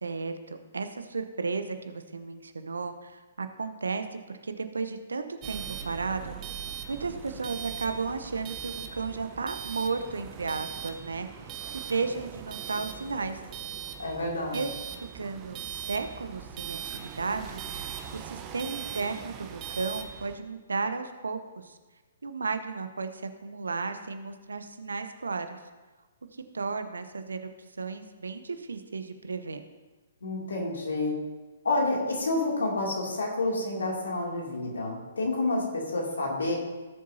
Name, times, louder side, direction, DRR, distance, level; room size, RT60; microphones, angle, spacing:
voice 1, 0.0-4.1 4.4-6.4 6.9-13.4 14.5-17.6 18.1-21.8 22.2-25.6 26.3-29.6, right 4 dB, 75° right, 9 dB, 0.8 m, -34 dB
sound 1, 5.4-20.4, right 8 dB, 25° right, 0.8 m, -40 dB
voice 2, 14.0-14.6 30.2-31.2 31.6-36.5, left 2 dB, 70° left, -1 dB, 2.6 m, -29 dB
17.0 x 7.5 x 2.8 m, 1.2 s
figure-of-eight pair, 125°, 0 cm